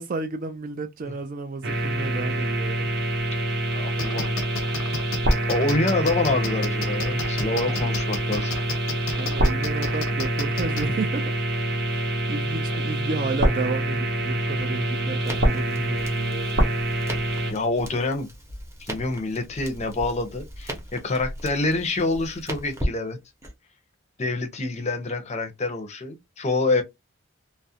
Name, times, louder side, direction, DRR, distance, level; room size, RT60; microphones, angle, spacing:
voice 1, 0.0-2.9 9.2-11.3 11.9-12.0 12.3-16.7, right 4 dB, 40° right, 0.3 m, -32 dB
sound 1, 1.6-17.5, right 1 dB, 55° right, 0.7 m, -25 dB
voice 2, 3.7-4.4 5.5-8.5 14.3-14.4 17.5-18.3 18.8-23.2 24.2-26.8, left 2 dB, 35° left, 0.6 m, -26 dB
sound 2, 4.0-10.8, left 4 dB, 80° left, 0.7 m, -32 dB
Crackle, 15.2-23.5, equal, 15° right, 0.7 m, -37 dB
2.4 x 2.0 x 2.6 m
head